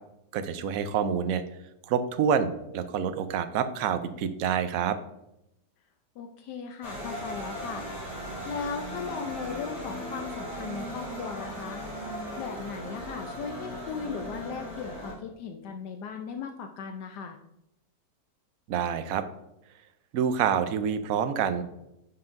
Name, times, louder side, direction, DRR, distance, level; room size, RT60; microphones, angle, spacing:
voice 1, 0.3-1.4 1.9-5.0 18.7-19.2 20.1-21.6, right 7 dB, 70° right, 10 dB, 0.9 m, -27 dB
voice 2, 6.2-7.9 8.4-11.8 12.4-17.4, left 6 dB, 75° left, 5 dB, 1.2 m, -37 dB
sound 1, 6.8-15.1, equal, 20° left, 2.7 m, -37 dB
9.7 x 5.8 x 2.6 m, 0.85 s
omnidirectional pair, 1.9 m